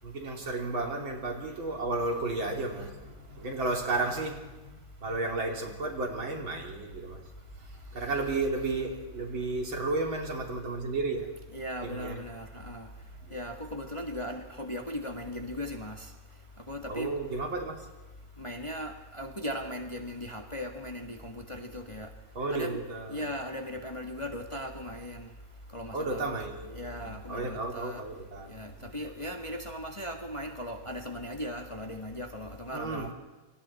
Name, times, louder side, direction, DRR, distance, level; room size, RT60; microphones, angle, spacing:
voice 1, 0.0-7.2 7.6-11.3 11.8-12.2 13.2-13.4 16.9-17.9 22.4-23.3 25.9-29.1 32.7-33.1, right 3 dB, 70° right, 1 dB, 4.0 m, -33 dB
voice 2, 11.5-12.9 13.3-16.1 16.7-17.1 18.4-22.1 22.5-22.8 23.1-25.3 25.7-26.4 26.7-28.0 28.5-33.1, equal, 15° left, 3 dB, 1.7 m, -38 dB
28.5 x 25.5 x 4.3 m, 1.2 s
omnidirectional pair, 2.3 m